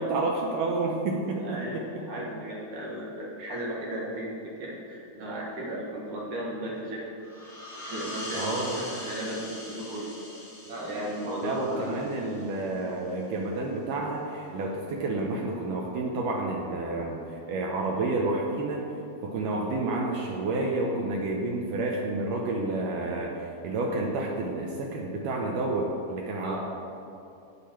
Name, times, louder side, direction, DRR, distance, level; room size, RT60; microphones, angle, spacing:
voice 1, 0.0-2.1 8.3-8.8 11.4-18.9 19.2-26.6, right 2 dB, 80° right, 0 dB, 1.9 m, -30 dB
voice 2, 1.4-7.0 7.8-12.0 26.4-26.6, right 1 dB, 60° right, -4 dB, 2.5 m, -35 dB
sound 1, 7.2-12.6, left 1 dB, 45° left, 0.9 m, -41 dB
12.5 x 8.5 x 4.5 m, 2.7 s
omnidirectional pair, 4.8 m